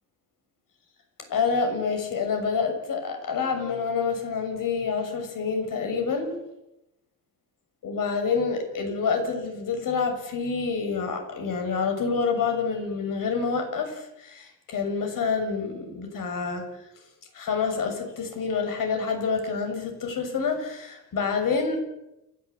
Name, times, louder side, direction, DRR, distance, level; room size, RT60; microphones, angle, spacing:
voice 1, 1.3-6.3 7.8-16.8 17.3-21.8, left 5 dB, 55° left, 5 dB, 6.7 m, -27 dB
29.5 x 11.5 x 8.3 m, 0.91 s
cardioid pair, 130°, 38 cm